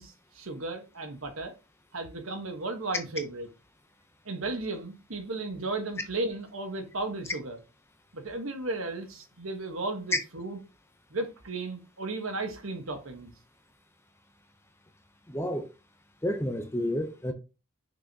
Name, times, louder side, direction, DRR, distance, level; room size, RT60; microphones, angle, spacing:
voice 1, 0.0-1.5 1.9-3.5 4.2-7.6 8.1-10.6 11.1-13.3, right 2 dB, 70° right, 1.3 m, -35 dB
voice 2, 15.3-15.7 16.2-17.3, equal, 10° left, 0.6 m, -30 dB
6.1 x 5.6 x 2.8 m
head